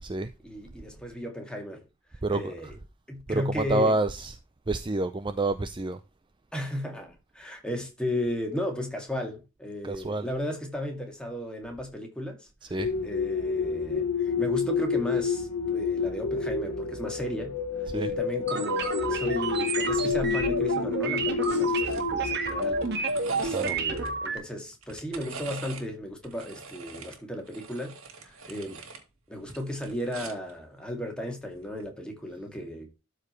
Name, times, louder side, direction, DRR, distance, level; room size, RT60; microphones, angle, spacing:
voice 1, 0.4-1.9 2.3-2.8 3.1-4.0 6.5-12.8 13.0-27.9 28.2-28.8 29.3-32.9, equal, 5° left, 2.2 m, -35 dB
voice 2, 2.2-2.7 3.3-4.4 4.7-6.0 9.8-10.3 12.6-12.9 17.9-18.1 20.0-20.2 23.5-23.8, right 2 dB, 25° right, 0.5 m, -28 dB
sound 1, 12.8-23.8, left 6 dB, 80° left, 1.2 m, -29 dB
sound 2, 18.5-24.4, right 4 dB, 55° right, 1.7 m, -30 dB
sound 3, 21.9-22.1 22.4-24.1 24.7-25.9 26.2-29.0 29.4-30.5 31.7-31.9, right 4 dB, 85° right, 2.3 m, -43 dB
13.0 x 4.9 x 3.2 m
head